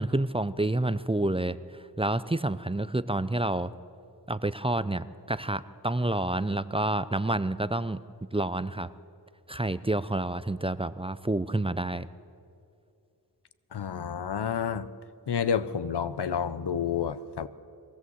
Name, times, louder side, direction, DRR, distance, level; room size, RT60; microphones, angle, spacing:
voice 1, 0.0-1.6 2.0-3.7 4.3-8.0 8.3-8.9 9.5-12.1, right 2 dB, 15° right, 15 dB, 0.6 m, -28 dB
voice 2, 13.7-14.9 15.3-17.5, left 7 dB, 75° left, 15 dB, 0.9 m, -29 dB
22.5 x 17.0 x 8.0 m, 2.6 s
wide cardioid pair, 60°, 40 cm